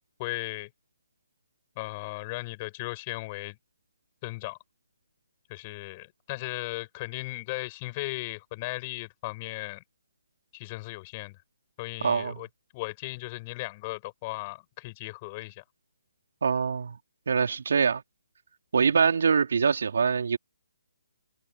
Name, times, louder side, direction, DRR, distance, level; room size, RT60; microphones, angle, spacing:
voice 1, 0.2-0.7 1.8-3.6 4.2-4.6 5.5-9.8 10.5-11.4 11.8-12.5 12.7-15.6, left 22 dB, 25° left, 7.7 m, -36 dB
voice 2, 12.0-12.4 16.4-17.0 17.3-18.0 18.7-20.4, right 6 dB, 65° right, 4.3 m, -24 dB
hypercardioid pair, 150°, 0 cm